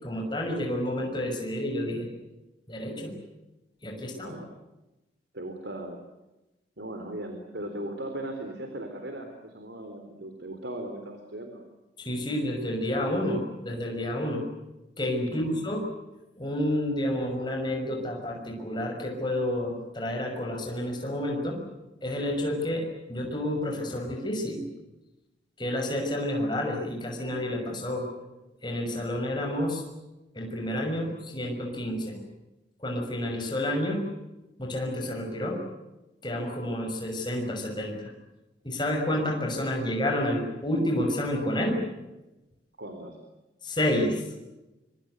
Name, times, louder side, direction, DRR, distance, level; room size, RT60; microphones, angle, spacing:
voice 1, 0.0-2.1 2.7-3.1 3.8-4.4 12.0-14.4 15.0-15.8 16.4-21.6 22.0-24.6 25.6-28.0 28.6-29.8 30.3-32.2 32.8-34.0 34.6-35.6 36.2-38.1 38.6-41.8 43.6-44.2, left 1 dB, 25° left, 2 dB, 6.2 m, -29 dB
voice 2, 4.2-4.5 5.3-6.0 6.8-11.6 15.2-15.5 42.8-43.2, right 1 dB, 75° right, 5 dB, 3.9 m, -38 dB
25.0 x 25.0 x 8.2 m, 0.99 s
head